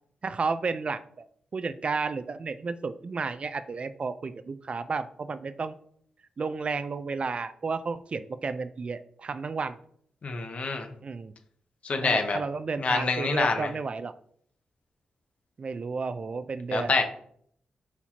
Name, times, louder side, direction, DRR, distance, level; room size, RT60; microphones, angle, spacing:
voice 1, 0.2-1.3 1.5-5.7 6.4-9.8 11.0-11.3 12.0-14.1 15.6-16.9, right 4 dB, 45° right, 12 dB, 0.3 m, -32 dB
voice 2, 10.2-10.9 11.8-12.4 12.8-13.7 16.7-17.0, left 4 dB, 55° left, 5 dB, 0.7 m, -26 dB
4.3 x 4.1 x 2.8 m, 0.63 s
cardioid pair, 55°, 3 cm